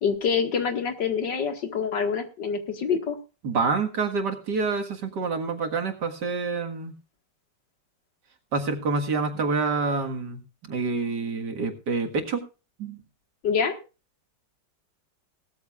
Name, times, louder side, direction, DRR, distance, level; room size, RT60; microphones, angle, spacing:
voice 1, 0.0-3.2 13.4-13.7, left 6 dB, 75° left, 7 dB, 2.4 m, -26 dB
voice 2, 3.4-6.9 8.5-10.4 10.7-12.4 12.8-13.0, right 4 dB, 70° right, 4 dB, 2.3 m, -27 dB
18.0 x 13.5 x 2.4 m, 0.31 s
omnidirectional pair, 1.9 m